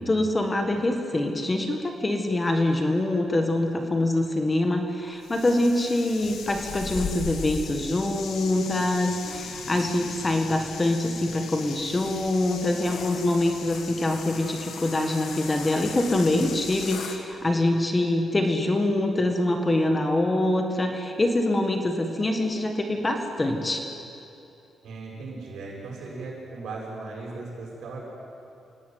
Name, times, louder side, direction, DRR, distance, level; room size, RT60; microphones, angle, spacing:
voice 1, 0.0-23.8, left 1 dB, 15° left, 4 dB, 1.8 m, -25 dB
sound 1, 5.2-17.2, left 6 dB, 70° left, 2.1 m, -38 dB
voice 2, 24.8-28.1, right 3 dB, 75° right, -3 dB, 7.6 m, -37 dB
28.5 x 17.5 x 9.6 m, 2.8 s
wide cardioid pair, 165°, 0 cm